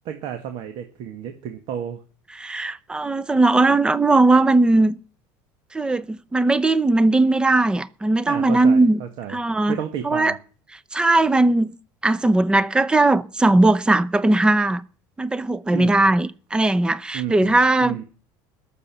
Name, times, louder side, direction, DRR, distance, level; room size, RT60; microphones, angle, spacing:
voice 1, 0.1-2.0 8.3-9.4 9.7-10.4 15.7-16.0 17.1-18.0, right 9 dB, 60° right, 1.8 m, -32 dB
voice 2, 2.4-4.9 5.7-9.0 9.3-9.8 10.0-10.4 10.9-11.7 12.0-14.8 15.2-18.0, right 2 dB, 10° right, 0.7 m, -18 dB
20.0 x 6.9 x 7.0 m
cardioid pair, 130°, 9 cm